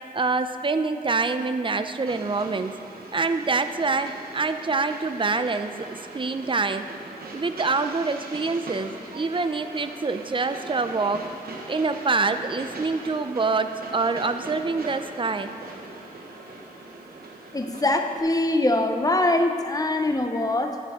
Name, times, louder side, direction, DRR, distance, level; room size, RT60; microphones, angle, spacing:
voice 1, 0.1-2.8 3.1-6.9 7.3-11.3 11.7-15.5, right 4 dB, 35° right, 9 dB, 0.5 m, -26 dB
Train, 2.1-18.2, right 2 dB, 85° right, 1.1 m, -41 dB
voice 2, 17.5-20.8, left 2 dB, 25° left, 5 dB, 0.8 m, -23 dB
10.5 x 9.2 x 3.7 m, 2.4 s
wide cardioid pair, 60°, 15 cm